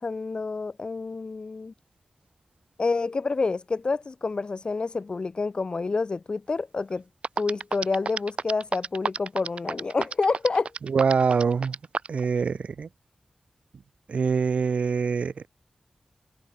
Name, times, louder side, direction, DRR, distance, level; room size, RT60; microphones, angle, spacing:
voice 1, 0.0-1.7 2.8-7.0 7.4-10.7, left 4 dB, 50° left, 1.6 m, -28 dB
sound 1, 6.9-7.0 7.2-12.2, right 5 dB, 65° right, 1.9 m, -30 dB
voice 2, 10.9-11.8 12.1-12.9 14.1-15.5, right 5 dB, 90° right, 1.8 m, -24 dB
wide cardioid pair, 120°, 2 cm